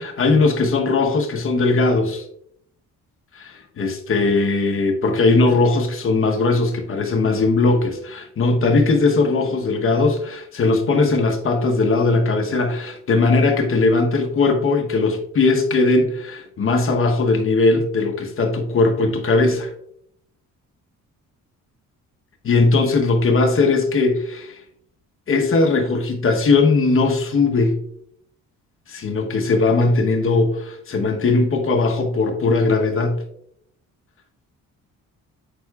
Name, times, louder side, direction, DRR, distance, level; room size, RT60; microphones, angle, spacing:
voice 1, 0.0-2.2 3.3-19.7 22.4-24.6 25.3-27.8 28.9-33.2, left 3 dB, 45° left, 1.0 m, -19 dB
7.8 x 6.3 x 2.3 m
cardioid pair, 90°, 30 cm